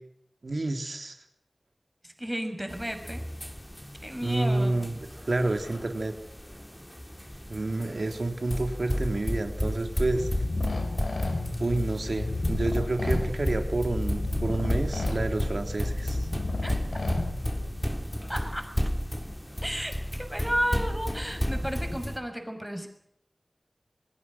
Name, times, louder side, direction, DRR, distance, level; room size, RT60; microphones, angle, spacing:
voice 1, 0.4-1.2 4.2-5.0 5.3-6.1 7.5-10.3 11.6-16.3, right 2 dB, 75° right, 6 dB, 3.8 m, -29 dB
voice 2, 2.0-3.3 4.0-4.8 16.6-16.8 17.1-17.4 18.3-18.8 19.6-22.9, equal, 5° right, 6 dB, 6.2 m, -33 dB
sound 1, 2.7-22.2, equal, 10° left, 3.4 m, -33 dB
sound 2, 10.1-17.8, left 2 dB, 85° left, 4.7 m, -32 dB
28.0 x 20.0 x 6.3 m, 0.69 s
wide cardioid pair, 60°, 0 cm